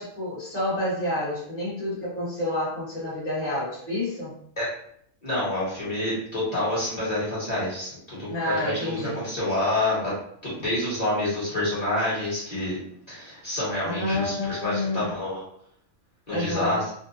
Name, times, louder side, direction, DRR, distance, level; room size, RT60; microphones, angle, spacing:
voice 1, 0.0-4.3 8.3-9.2 13.9-15.0 16.3-16.8, left 1 dB, 10° left, -9 dB, 0.8 m, -29 dB
voice 2, 5.2-10.1 10.4-12.8 13.1-15.4 16.3-16.8, left 1 dB, 35° left, -10 dB, 1.1 m, -28 dB
2.7 x 2.1 x 2.6 m, 0.66 s
omnidirectional pair, 1.4 m